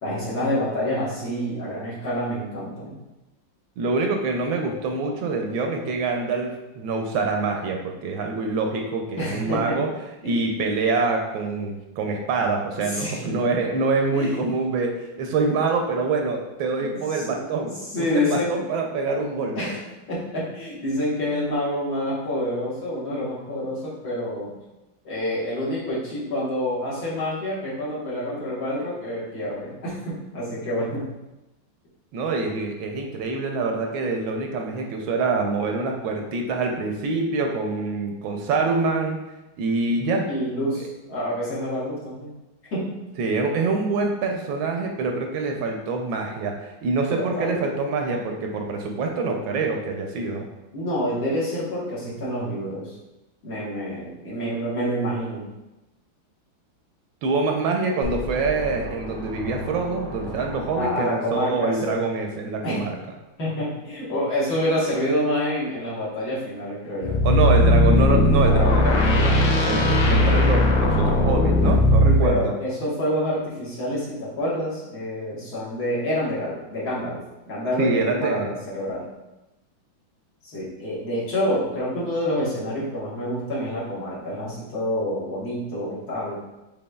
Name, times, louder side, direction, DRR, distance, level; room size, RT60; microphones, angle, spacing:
voice 1, 0.0-3.0 9.2-9.8 10.2-10.5 12.9-13.3 14.1-14.4 16.8-18.6 19.6-19.8 20.1-24.5 25.0-31.1 40.2-42.3 42.7-43.0 47.1-47.6 50.7-52.9 53.4-55.5 60.8-62.1 62.6-62.9 63.4-67.3 72.0-77.2 77.5-79.0 80.4-86.4, left 1 dB, 55° left, -8 dB, 1.7 m, -27 dB
voice 2, 3.8-9.9 10.2-19.6 32.1-39.2 39.6-40.3 40.8-40.9 43.2-50.5 57.2-62.9 67.2-72.5 77.8-78.6, right 3 dB, 80° right, 2 dB, 1.3 m, -25 dB
sound 1, 58.0-61.3, left 1 dB, 20° left, 1.3 m, -35 dB
sound 2, 67.0-72.3, left 1 dB, 75° left, 1.3 m, -18 dB
6.1 x 3.2 x 2.2 m, 1.0 s
omnidirectional pair, 2.2 m